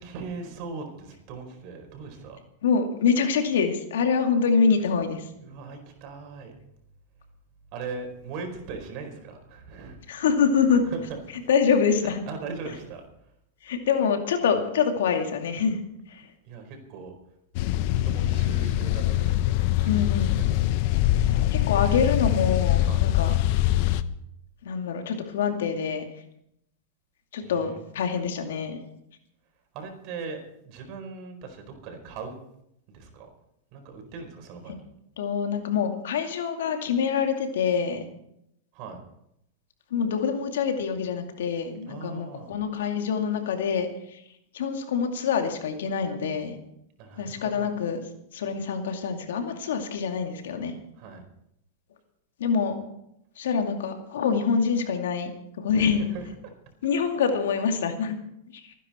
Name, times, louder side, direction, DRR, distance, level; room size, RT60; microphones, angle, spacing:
voice 1, 0.0-2.4 5.4-6.5 7.7-10.0 10.7-11.0 12.3-13.0 16.4-17.1 17.9-20.6 21.3-21.5 22.8-23.1 27.4-27.8 29.7-32.4 32.9-33.3 33.7-34.9 38.7-39.0 41.9-42.5 47.0-47.7 51.0-51.2 55.7-56.3, right 4 dB, 50° right, 4 dB, 4.7 m, -39 dB
voice 2, 2.6-5.2 10.1-10.8 11.5-12.2 13.6-15.8 16.1-16.2 19.9-20.4 21.2-23.3 24.6-26.0 27.3-28.8 35.2-38.0 39.9-44.2 44.5-46.6 47.2-48.0 48.3-50.7 52.4-52.8 53.4-55.3 55.6-56.0 56.8-58.2, left 6 dB, 80° left, 5 dB, 2.3 m, -25 dB
sound 1, 17.5-24.0, left 14 dB, 55° left, 0.8 m, -23 dB
24.0 x 10.0 x 4.4 m, 0.78 s
hypercardioid pair, 120°, 0 cm